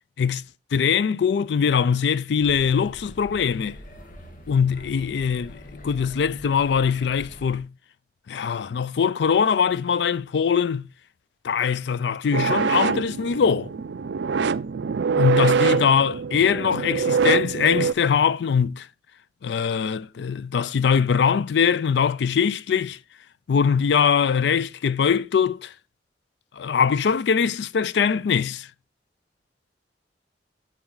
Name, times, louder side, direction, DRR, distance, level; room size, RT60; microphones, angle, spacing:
voice 1, 0.7-3.8 4.5-7.7 8.3-10.9 11.4-13.7 15.1-18.9 19.4-23.0 23.5-25.7 26.6-28.7, left 6 dB, 70° left, 0.4 m, -22 dB
sound 1, 2.4-7.6, left 1 dB, 50° left, 1.5 m, -43 dB
sound 2, 12.3-17.9, right 6 dB, 75° right, 0.4 m, -24 dB
11.5 x 4.3 x 3.8 m
head